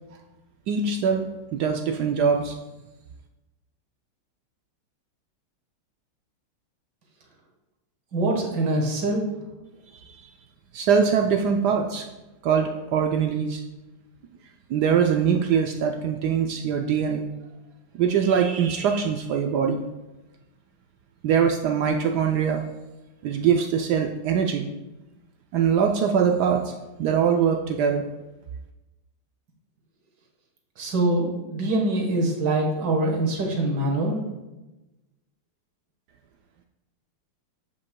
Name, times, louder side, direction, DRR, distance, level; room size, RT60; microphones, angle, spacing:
voice 1, 0.7-2.6 10.1-10.3 10.7-12.1 12.4-13.6 14.7-17.3 17.9-19.8 21.2-22.6 23.2-24.7 25.5-26.7 27.0-28.0, right 7 dB, 80° right, 4 dB, 0.9 m, -23 dB
voice 2, 8.1-9.2 30.8-34.2, right 2 dB, 55° right, 0 dB, 1.9 m, -24 dB
14.0 x 5.3 x 2.2 m, 1.0 s
omnidirectional pair, 2.3 m